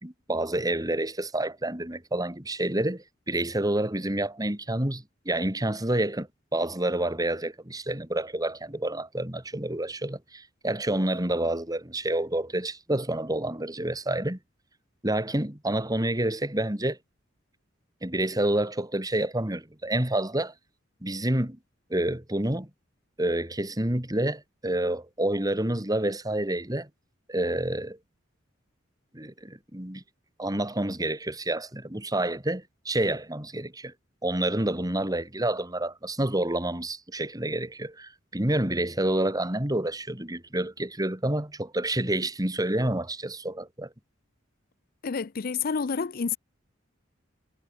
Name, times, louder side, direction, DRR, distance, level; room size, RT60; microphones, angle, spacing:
voice 1, 0.0-14.4 15.0-17.0 18.0-20.5 21.0-21.6 21.9-22.7 23.2-26.9 27.3-28.0 29.1-30.0 30.4-33.9 34.2-43.9, right 1 dB, 20° right, 3.0 m, -28 dB
voice 2, 45.0-46.4, left 5 dB, 50° left, 0.5 m, -29 dB
head